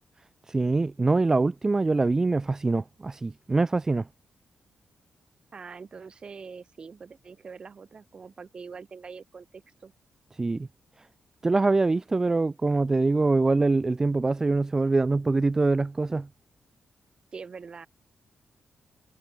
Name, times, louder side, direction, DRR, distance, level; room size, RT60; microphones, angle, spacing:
voice 1, 0.5-4.1 10.3-10.7 11.4-16.3, right 3 dB, 20° right, 1.0 m, -24 dB
voice 2, 5.5-9.9 17.3-17.9, right 5 dB, 40° right, 7.1 m, -43 dB
wide cardioid pair, 140°, 3 cm